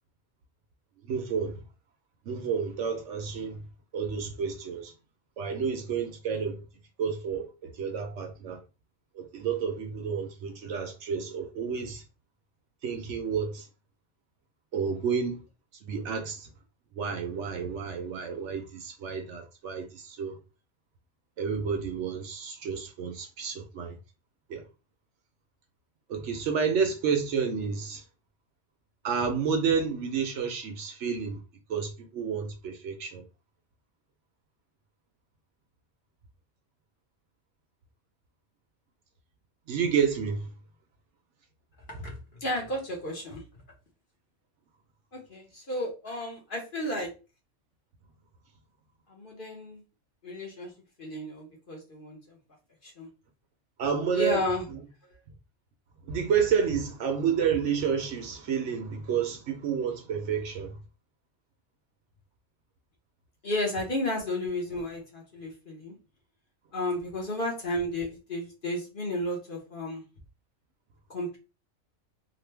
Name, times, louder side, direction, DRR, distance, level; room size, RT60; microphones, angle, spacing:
voice 1, 1.0-1.6 2.2-3.6 3.9-4.9 5.4-6.6 7.0-8.6 9.1-12.0 12.8-13.7 14.7-15.4 15.8-16.5 17.0-20.4 21.4-24.0 24.5-24.6 26.1-28.0 29.0-31.4 31.7-33.2 39.7-40.5 53.8-54.4 54.7-54.8 56.0-60.8, right 6 dB, 65° right, 0.9 m, -30 dB
voice 2, 42.4-43.4 45.1-47.1 49.1-49.8 50.2-50.7 51.0-52.4 52.8-53.1 54.1-54.6 63.4-66.0 66.7-70.0 71.1-71.4, left 1 dB, 45° left, 1.0 m, -33 dB
3.1 x 2.1 x 3.3 m
omnidirectional pair, 1.4 m